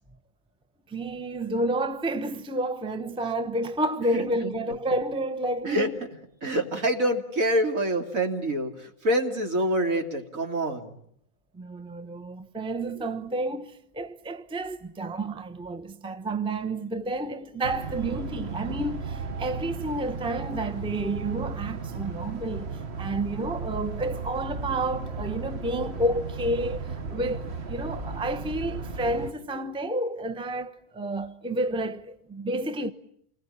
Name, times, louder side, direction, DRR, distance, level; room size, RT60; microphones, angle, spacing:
voice 1, 0.9-5.9 11.5-32.9, right 1 dB, 5° right, 0.9 m, -30 dB
voice 2, 4.1-4.5 5.6-5.9 6.4-11.0, right 1 dB, 70° right, 3.2 m, -26 dB
sound 1, 17.6-29.3, right 4 dB, 50° right, 1.5 m, -35 dB
28.5 x 20.5 x 9.9 m
omnidirectional pair, 1.5 m